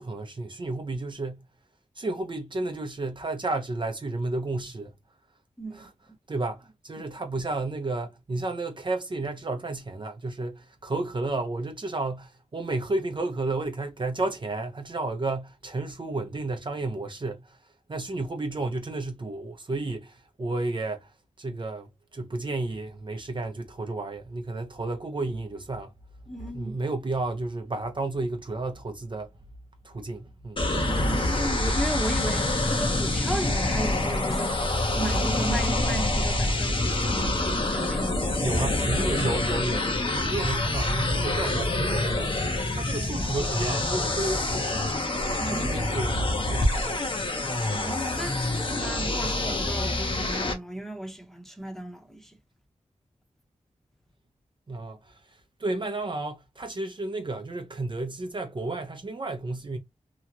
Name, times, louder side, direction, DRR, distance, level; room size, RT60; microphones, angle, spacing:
voice 1, 0.0-1.5 2.0-4.9 5.7-5.9 6.3-25.9 26.5-29.3 29.8-30.6 38.4-42.3 42.7-44.9 45.5-46.2 46.4-47.1 54.7-59.8, right 2 dB, 40° right, 0.6 m, -32 dB
voice 2, 5.6-5.9 26.3-26.8 30.7-34.6 34.9-38.4 45.4-45.8 47.7-52.4, right 1 dB, 5° left, 0.9 m, -35 dB
sound 1, 30.6-50.5, left 2 dB, 40° left, 0.9 m, -26 dB
2.9 x 2.4 x 2.8 m
wide cardioid pair, 70°, 13 cm